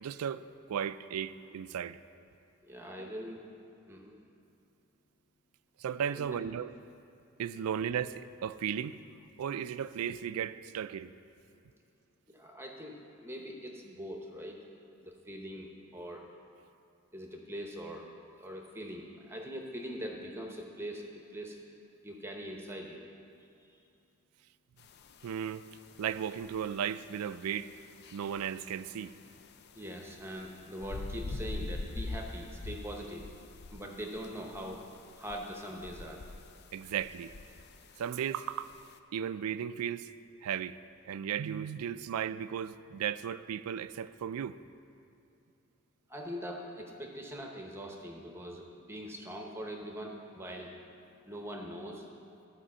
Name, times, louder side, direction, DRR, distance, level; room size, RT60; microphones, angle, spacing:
voice 1, 0.0-2.0 3.0-3.1 5.8-6.7 7.4-9.0 9.4-11.1 25.2-25.7 26.0-27.7 28.1-29.1 36.7-37.3 38.0-38.7 39.1-40.1 40.4-40.8 41.1-44.6, right 8 dB, 85° right, 14 dB, 0.3 m, -35 dB
voice 2, 2.6-3.4 3.8-4.2 6.1-6.4 12.3-14.6 15.0-16.3 17.1-18.1 18.4-21.6 22.0-23.0 23.4-23.8 29.8-33.3 33.7-34.9 35.2-36.2 46.1-50.8 51.2-52.1, equal, 10° right, 1 dB, 0.8 m, -42 dB
sound 1, 24.8-39.0, left 2 dB, 45° left, 0.4 m, -46 dB
12.5 x 5.1 x 7.4 m, 2.6 s
head